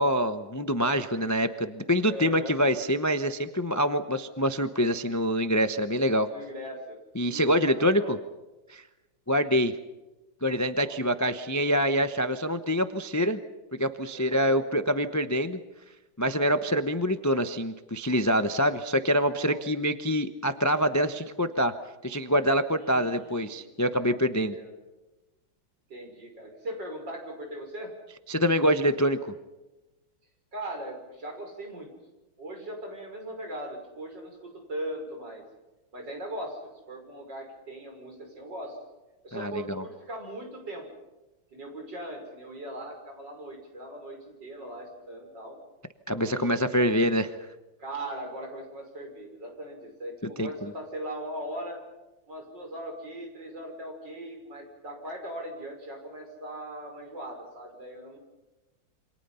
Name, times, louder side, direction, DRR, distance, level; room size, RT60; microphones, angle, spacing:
voice 1, 0.0-6.3 7.1-8.2 8.7-8.8 9.3-9.7 10.4-13.4 13.8-15.6 16.2-21.7 22.0-24.5 28.3-29.2 39.3-39.8 46.1-47.3 50.4-50.5, equal, 25° left, 9 dB, 0.3 m, -25 dB
voice 2, 2.0-2.5 6.3-7.0 7.3-8.2 10.8-10.9 14.1-14.6 19.4-19.6 22.8-23.8 24.4-24.7 25.9-27.9 30.5-31.9 32.4-35.4 35.9-38.8 39.2-40.9 41.5-45.6 46.2-47.0 47.8-51.8 52.3-58.2, right 1 dB, 55° right, 2 dB, 6.5 m, -39 dB
28.5 x 26.0 x 5.7 m, 1.1 s
omnidirectional pair, 2.2 m